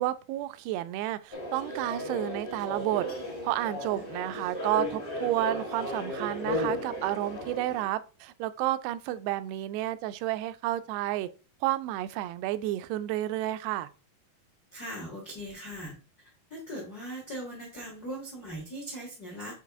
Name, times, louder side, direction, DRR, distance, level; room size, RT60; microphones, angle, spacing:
voice 1, 0.0-3.1 3.4-11.3 11.6-13.9, right 15 dB, 85° right, 2.6 m, -31 dB
sound 1, 1.3-7.9, left 1 dB, 55° left, 0.6 m, -35 dB
voice 2, 14.7-15.9 16.5-19.6, equal, 85° left, 0.8 m, -40 dB
7.5 x 3.9 x 3.5 m
omnidirectional pair, 4.7 m